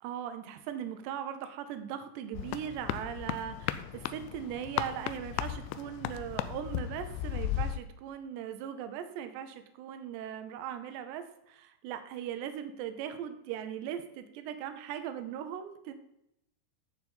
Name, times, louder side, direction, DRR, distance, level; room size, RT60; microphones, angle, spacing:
voice 1, 0.0-15.9, right 9 dB, 80° right, 9 dB, 2.6 m, -39 dB
sound 1, 2.3-7.8, left 12 dB, 85° left, 2.7 m, -36 dB
14.0 x 4.7 x 5.5 m, 0.82 s
omnidirectional pair, 5.8 m